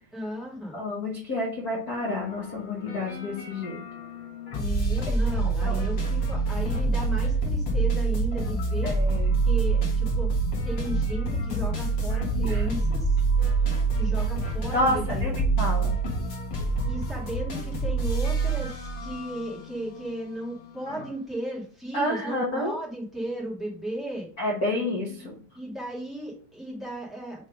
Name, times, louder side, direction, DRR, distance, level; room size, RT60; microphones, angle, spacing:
voice 1, 0.1-0.8 4.5-8.9 9.4-10.3 10.6-13.2 13.9-15.3 16.8-24.3 25.0-25.2 25.5-27.5, right 1 dB, ahead, -4 dB, 0.9 m, -35 dB
voice 2, 0.7-3.8 5.3-5.8 8.8-9.3 12.4-12.6 13.6-13.7 14.7-15.9 21.9-22.7 24.4-25.4, left 1 dB, 60° left, -3 dB, 0.9 m, -29 dB
sound 1, 1.9-21.1, right 3 dB, 45° left, 1.7 m, -27 dB
6.3 x 3.4 x 5.1 m, 0.43 s
omnidirectional pair, 4.1 m